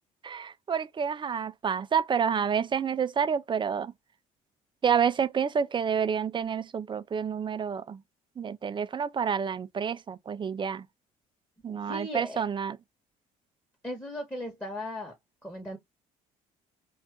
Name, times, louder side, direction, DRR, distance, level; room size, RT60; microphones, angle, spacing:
voice 1, 0.2-3.9 4.8-8.0 8.4-10.9 11.6-12.8, right 7 dB, 30° right, 0.4 m, -29 dB
voice 2, 11.9-12.4 13.8-15.1 15.4-15.8, left 1 dB, 10° left, 1.1 m, -37 dB
2.5 x 2.3 x 3.5 m
hypercardioid pair, 65°, 17 cm